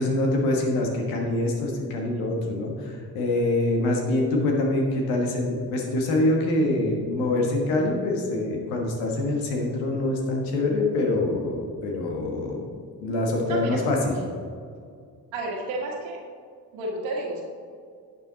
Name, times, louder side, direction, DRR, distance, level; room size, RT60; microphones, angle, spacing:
voice 1, 0.0-12.6 13.0-14.2, left 2 dB, 90° left, 0 dB, 1.4 m, -25 dB
voice 2, 13.5-13.9 15.3-16.2 16.7-17.4, right 2 dB, 85° right, 0 dB, 1.7 m, -31 dB
11.0 x 6.8 x 4.0 m, 2.2 s
hypercardioid pair, 40°, 45 cm